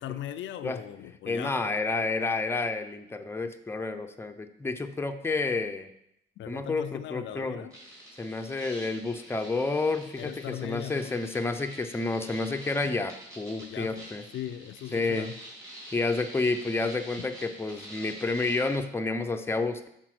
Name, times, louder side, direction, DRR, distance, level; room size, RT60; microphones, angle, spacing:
voice 1, 0.0-1.7 6.4-7.7 10.2-11.2 13.6-14.0 14.3-15.4 17.2-17.3, left 11 dB, 70° left, 10 dB, 0.4 m, -39 dB
voice 2, 1.3-5.9 6.5-7.7 8.2-14.2 14.9-15.3 15.9-19.9, left 3 dB, 10° left, 6 dB, 0.6 m, -30 dB
sound 1, 7.7-18.8, right 1 dB, 15° right, 3.0 m, -47 dB
6.1 x 4.1 x 6.0 m, 0.77 s
cardioid pair, 90°, 20 cm